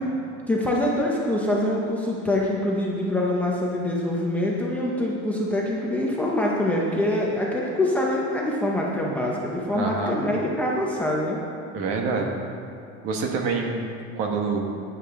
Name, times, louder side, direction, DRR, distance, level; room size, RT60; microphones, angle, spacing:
voice 1, 0.5-11.4, left 1 dB, 5° left, -4 dB, 0.6 m, -25 dB
voice 2, 9.7-10.3 11.7-12.3 13.0-14.7, right 4 dB, 50° right, 1 dB, 1.4 m, -27 dB
12.5 x 9.7 x 3.6 m, 2.6 s
cardioid pair, 180°, 30 cm